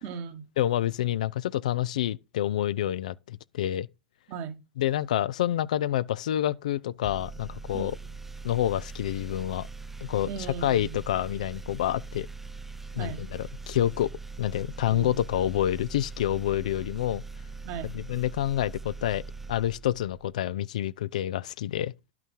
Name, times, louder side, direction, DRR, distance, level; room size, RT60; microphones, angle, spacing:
voice 1, 0.0-0.5 4.3-4.6 7.7-8.1 10.3-11.0 13.0-13.3 14.9-15.1 17.6-17.9, right 7 dB, 50° right, 1.4 m, -37 dB
voice 2, 0.6-3.9 4.8-7.9 8.4-9.7 10.0-10.3 10.6-12.3 12.9-14.1 14.4-17.2 17.9-19.2 19.5-21.9, left 12 dB, 70° left, 0.4 m, -28 dB
sound 1, 7.0-20.4, right 4 dB, 5° right, 0.4 m, -41 dB
11.0 x 5.9 x 4.6 m
hypercardioid pair, 100°, 4 cm